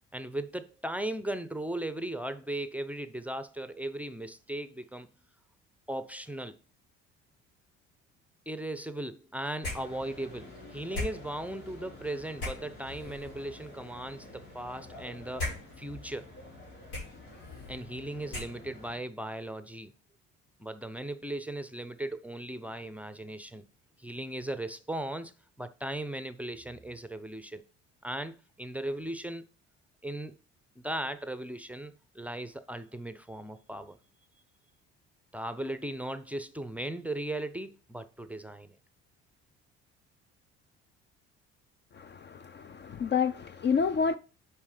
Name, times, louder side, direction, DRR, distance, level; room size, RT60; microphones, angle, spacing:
voice 1, 0.1-5.2 5.9-6.6 8.5-16.3 17.7-19.9 20.6-23.7 24.0-25.3 25.6-27.6 28.0-29.4 30.0-30.4 30.8-34.0 35.3-38.8, right 1 dB, 5° right, 0.6 m, -37 dB
sound 1, 9.6-19.0, left 2 dB, 90° left, 3.6 m, -42 dB
voice 2, 42.0-44.2, left 6 dB, 35° left, 0.5 m, -29 dB
5.4 x 4.9 x 5.0 m
supercardioid pair, 70°, 31 cm